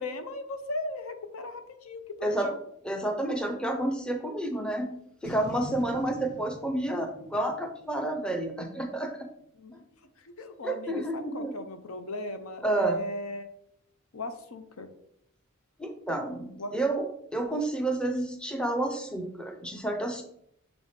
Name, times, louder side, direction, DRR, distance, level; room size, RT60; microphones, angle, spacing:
voice 1, 0.0-2.6 9.5-9.8 10.2-13.5 14.1-14.9 16.6-16.7, left 1 dB, 75° left, 8 dB, 0.7 m, -37 dB
voice 2, 2.2-2.5 2.8-9.3 9.7-9.8 10.6-11.5 12.6-13.0 15.8-20.2, right 1 dB, 5° left, 4 dB, 0.5 m, -30 dB
Boom, 5.2-8.6, equal, 50° left, 2.0 m, -45 dB
6.9 x 4.0 x 3.6 m, 0.73 s
head